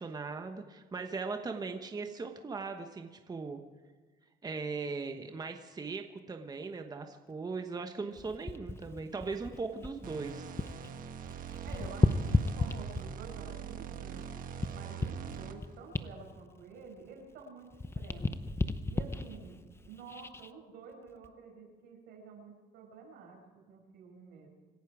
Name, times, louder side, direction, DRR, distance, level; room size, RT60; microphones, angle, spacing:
voice 1, 0.0-3.6 4.4-10.5, right 4 dB, 25° right, 5 dB, 1.2 m, -39 dB
sound 1, 8.2-10.9 11.2-13.3 13.9-17.4 17.7-20.5 21.1-21.3, left 3 dB, 15° left, 0.8 m, -34 dB
sound 2, 10.0-15.8, right 8 dB, 55° right, 1.3 m, -43 dB
voice 2, 11.6-14.3 14.7-17.7 17.9-18.4 18.9-24.5, right 5 dB, 85° right, 1 dB, 6.0 m, -50 dB
26.5 x 11.0 x 4.9 m, 1.5 s
cardioid pair, 110°, 17 cm